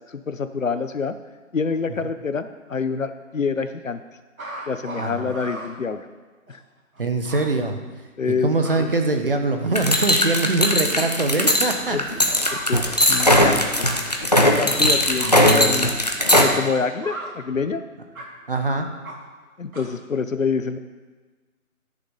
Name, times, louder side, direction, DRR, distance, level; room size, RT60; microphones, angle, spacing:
voice 1, 0.1-1.1 1.5-4.0 4.7-6.1 6.5-6.6 8.2-8.9 11.9-12.0 12.5-13.9 14.3-15.9 16.4-17.8 19.6-20.8, left 5 dB, 65° left, 10 dB, 0.9 m, -26 dB
sound 1, 4.4-5.7 6.5-6.6 7.0-7.1 7.3-7.4 8.4-8.8 9.5-10.3 10.6-10.8 11.4-11.7 12.4-12.7 13.8-14.1 14.6-14.8 15.1-15.3 15.7-15.9 16.3-16.6 17.0-17.4 18.2-18.3 19.0-19.2 19.7-20.0, right 2 dB, 70° right, 2.7 m, -36 dB
voice 2, 5.0-5.3 7.0-7.8 8.3-12.6 14.8-15.9 18.5-18.9, right 3 dB, 40° right, 5 dB, 1.1 m, -24 dB
sound 2, 9.8-16.5, left 1 dB, 30° left, 0.7 m, -19 dB
13.5 x 6.7 x 5.5 m, 1.3 s
figure-of-eight pair, 170°, 43 cm